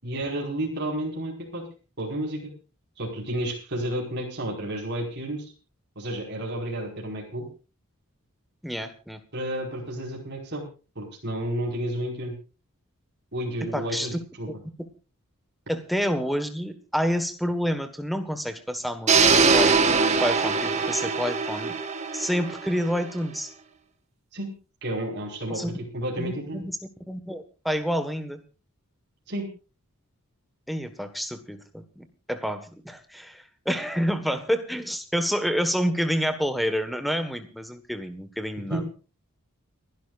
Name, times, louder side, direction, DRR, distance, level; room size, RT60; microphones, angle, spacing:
voice 1, 0.0-1.6 2.0-2.5 3.0-5.5 5.9-7.5 9.3-10.7 10.9-12.3 13.3-14.5 24.3-24.5 24.8-26.6 29.3-29.5 38.7-38.8, right 1 dB, 50° right, 0 dB, 5.1 m, -31 dB
voice 2, 8.6-9.2 13.7-14.2 15.7-21.8 22.1-23.5 25.5-25.7 26.2-26.8 27.1-28.4 30.7-38.8, equal, ahead, 8 dB, 1.4 m, -28 dB
sound 1, 19.1-23.1, right 5 dB, 30° right, 1.6 m, -22 dB
30.0 x 11.5 x 2.5 m, 0.34 s
head